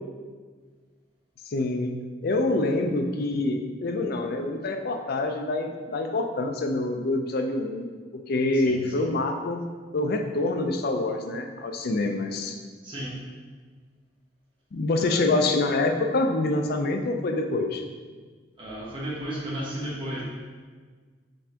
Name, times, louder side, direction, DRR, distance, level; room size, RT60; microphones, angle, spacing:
voice 1, 1.5-12.6 14.7-17.8, left 2 dB, 60° left, 4 dB, 0.4 m, -26 dB
voice 2, 8.5-9.1 12.8-13.1 15.0-15.3 18.6-20.2, right 1 dB, 30° right, -7 dB, 0.9 m, -34 dB
5.3 x 3.4 x 2.8 m, 1.5 s
head